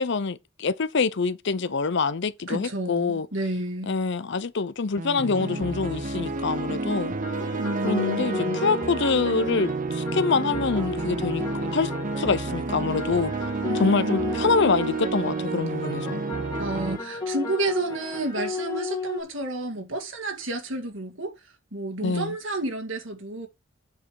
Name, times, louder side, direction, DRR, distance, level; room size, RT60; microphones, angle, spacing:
voice 1, 0.0-3.3 3.9-7.1 7.8-11.9 12.2-13.3 13.8-16.2 22.0-22.3, left 4 dB, 60° left, 0.7 m, -25 dB
voice 2, 2.5-4.0 7.6-8.6 13.6-14.5 16.6-21.3 21.7-23.5, right 2 dB, 65° right, 1.9 m, -30 dB
sound 1, 5.0-17.0, right 3 dB, 40° right, 0.7 m, -30 dB
sound 2, 7.2-19.2, left 4 dB, 20° left, 2.0 m, -35 dB
8.4 x 5.2 x 4.7 m
head